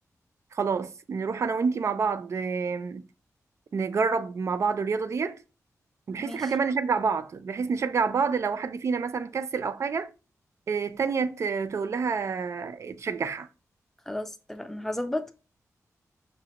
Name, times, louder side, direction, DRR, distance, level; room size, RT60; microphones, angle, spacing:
voice 1, 0.5-3.0 3.7-5.4 6.1-10.1 10.7-13.5, right 5 dB, 55° right, 0.4 m, -28 dB
voice 2, 6.2-6.5 14.1-15.3, left 1 dB, 5° left, 0.4 m, -33 dB
5.8 x 2.1 x 2.9 m
wide cardioid pair, 130°, 6 cm